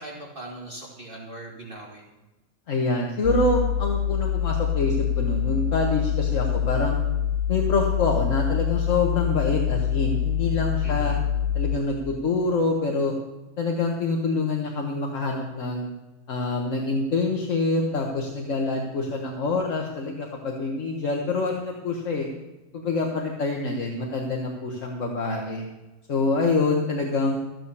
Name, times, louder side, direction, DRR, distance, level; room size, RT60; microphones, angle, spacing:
voice 1, 0.0-2.0 10.8-11.2, right 1 dB, 40° right, -2 dB, 2.2 m, -40 dB
voice 2, 2.7-7.0 7.5-11.1 11.5-13.1 13.6-15.9 16.3-22.3 22.7-25.6 26.1-27.4, left 3 dB, 70° left, 1 dB, 1.7 m, -26 dB
sound 1, 3.2-11.8, left 9 dB, 90° left, 1.1 m, -25 dB
14.5 x 7.7 x 6.9 m, 1.1 s
omnidirectional pair, 1.4 m